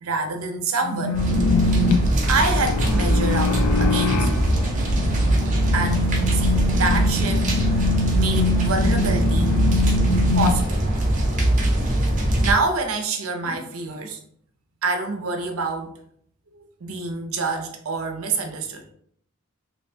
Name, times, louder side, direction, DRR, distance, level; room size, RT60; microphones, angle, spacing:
voice 1, 0.0-1.3 2.3-4.3 5.7-9.7 10.3-10.8 12.4-14.2 14.8-15.9 16.5-18.8, right 3 dB, 70° right, 4 dB, 0.6 m, -27 dB
sound 1, 0.8-10.5, left 3 dB, 90° left, 0.5 m, -24 dB
sound 2, 1.1-12.5, right 1 dB, 35° right, 0.7 m, -21 dB
2.9 x 2.2 x 4.2 m, 0.66 s
head